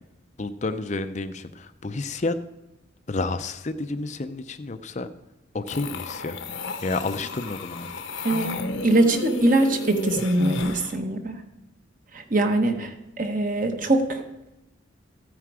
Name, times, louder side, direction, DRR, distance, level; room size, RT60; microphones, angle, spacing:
voice 1, 0.4-2.3 3.1-5.1 5.5-6.4 6.8-7.9, left 3 dB, 35° left, 10 dB, 0.5 m, -30 dB
sound 1, 5.7-11.0, left 2 dB, 75° left, 1.0 m, -32 dB
voice 2, 8.2-8.6 8.8-11.4 12.1-14.2, right 2 dB, 40° right, 6 dB, 1.2 m, -22 dB
14.5 x 9.4 x 4.8 m, 0.95 s
head